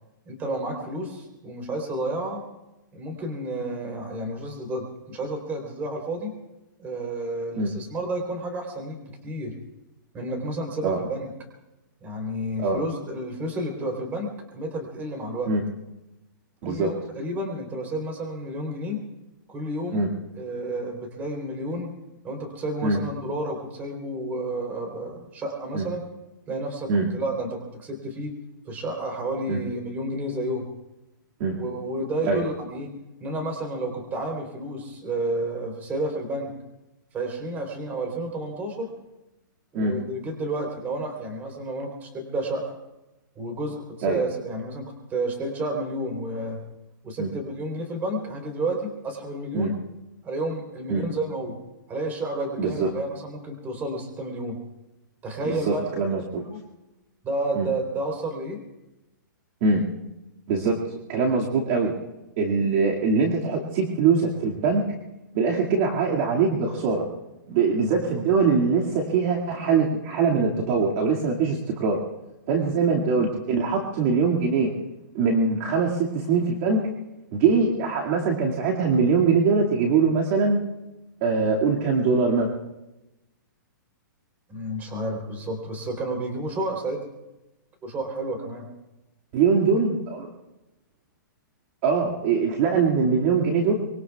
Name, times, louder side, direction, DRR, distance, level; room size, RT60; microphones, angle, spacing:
voice 1, 0.2-2.4 2.9-6.3 6.8-9.6 10.1-11.3 12.0-15.5 16.6-19.0 19.5-20.0 20.4-21.9 22.2-26.0 26.5-28.3 28.6-30.7 31.5-32.9 33.2-36.5 37.1-38.9 39.7-42.7 43.3-46.6 47.0-49.7 50.2-51.6 51.9-54.6 55.2-56.6 57.2-58.6 72.6-72.7 84.5-87.0 87.8-88.7, right 1 dB, 15° right, 2 dB, 3.6 m, -31 dB
voice 2, 52.6-52.9 55.4-56.4 57.5-57.7 59.6-59.8 60.5-60.8 61.1-61.9 62.4-64.8 65.3-67.0 67.5-72.0 72.5-74.7 75.1-76.9 77.3-80.6 81.2-82.5 89.3-90.3 91.8-93.7, right 4 dB, 35° right, -3 dB, 2.2 m, -22 dB
24.5 x 23.5 x 2.4 m, 0.97 s
hypercardioid pair, 160°, 11 cm